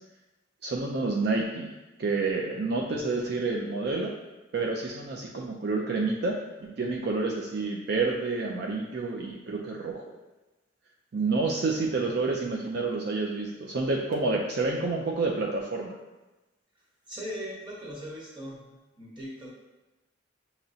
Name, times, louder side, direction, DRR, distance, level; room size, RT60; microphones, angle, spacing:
voice 1, 0.6-1.7 2.0-4.1 4.5-10.0 11.1-16.0, right 3 dB, 60° right, -1 dB, 0.4 m, -29 dB
voice 2, 17.1-18.6 19.0-19.5, equal, 25° right, -5 dB, 1.1 m, -39 dB
6.6 x 2.9 x 2.7 m, 1.1 s
head